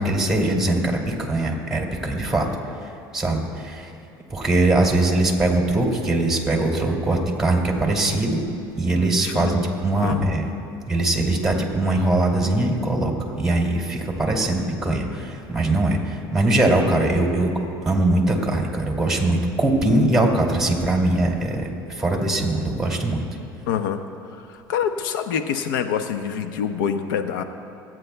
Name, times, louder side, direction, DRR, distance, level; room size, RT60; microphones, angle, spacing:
voice 1, 0.0-2.5 3.1-3.9 4.3-8.4 8.8-10.4 10.8-13.1 13.4-17.5 17.9-21.7 22.0-23.2, right 2 dB, 5° right, 0 dB, 2.5 m, -21 dB
voice 2, 9.2-9.5 10.0-10.2 23.7-24.0 24.4-27.4, left 8 dB, 85° left, 8 dB, 0.8 m, -26 dB
26.5 x 9.2 x 2.3 m, 2.9 s
supercardioid pair, 90°, 11 cm